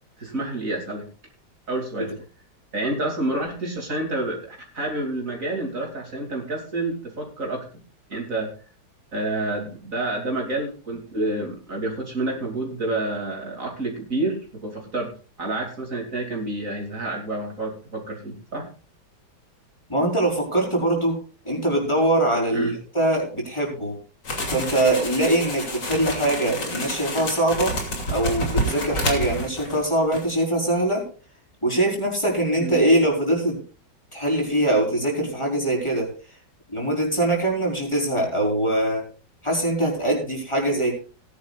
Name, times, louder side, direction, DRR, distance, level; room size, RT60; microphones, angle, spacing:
voice 1, 0.2-1.1 1.7-2.1 2.7-7.7 8.1-8.5 9.1-15.1 15.4-18.7 22.5-22.8 32.6-32.8, right 2 dB, 50° right, 1 dB, 3.2 m, -28 dB
voice 2, 19.9-21.2 21.4-24.0 24.5-27.8 28.1-31.0 31.6-33.6 34.1-36.1 36.7-39.0 39.4-40.9, right 1 dB, 15° left, -1 dB, 4.7 m, -22 dB
sound 1, 24.2-29.9 30.1-30.3, equal, 90° left, 3.5 m, -29 dB
18.5 x 10.5 x 2.5 m, 0.36 s
omnidirectional pair, 1.8 m